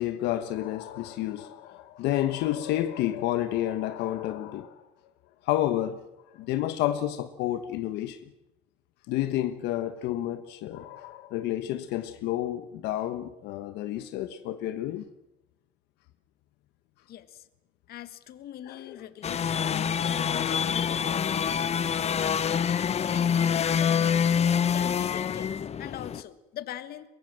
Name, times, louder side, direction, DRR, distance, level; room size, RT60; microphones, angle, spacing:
voice 1, 0.0-4.8 5.4-6.0 6.3-8.3 9.1-15.1 18.7-19.0, left 13 dB, 90° left, 1.2 m, -30 dB
voice 2, 17.1-17.5 17.9-21.4 22.2-22.5 23.0-27.1, left 11 dB, 65° left, 1.7 m, -42 dB
sound 1, 19.2-26.2, left 7 dB, 40° left, 0.9 m, -26 dB
23.5 x 22.0 x 7.6 m
cardioid pair, 110°, 17 cm